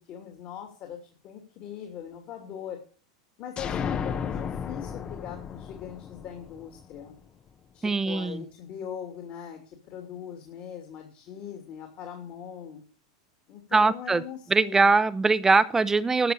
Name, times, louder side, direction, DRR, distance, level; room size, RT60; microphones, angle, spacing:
voice 1, 0.1-2.8 3.4-7.2 7.7-12.8 13.5-14.9, left 9 dB, 50° left, 3 dB, 2.9 m, -41 dB
sound 1, 3.6-7.2, left 7 dB, 30° left, 0.9 m, -34 dB
voice 2, 7.8-8.4 13.7-14.2 14.5-16.3, right 3 dB, 15° right, 15 dB, 0.7 m, -22 dB
12.5 x 6.6 x 6.9 m, 0.41 s
hypercardioid pair, 105°, 3 cm